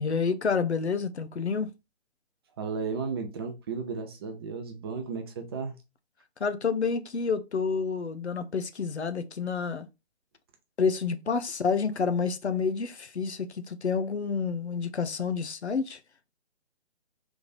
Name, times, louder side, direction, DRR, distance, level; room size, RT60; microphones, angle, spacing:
voice 1, 0.0-1.7 6.4-9.9 10.8-16.0, left 5 dB, 80° left, 0.7 m, -29 dB
voice 2, 2.6-5.8, right 5 dB, 25° right, 0.6 m, -34 dB
3.5 x 3.2 x 3.9 m
figure-of-eight pair, 140°, 33 cm